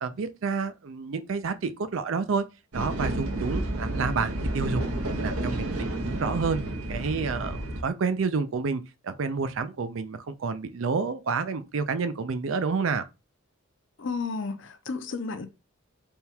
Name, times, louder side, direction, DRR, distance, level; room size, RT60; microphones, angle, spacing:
voice 1, 0.0-2.4 2.7-4.8 5.2-6.6 6.9-13.0, right 4 dB, 65° right, 0.4 m, -29 dB
sound 1, 2.7-7.8, right 1 dB, 85° right, 0.9 m, -30 dB
voice 2, 14.0-15.5, left 4 dB, 55° left, 0.5 m, -32 dB
3.5 x 2.3 x 4.3 m
head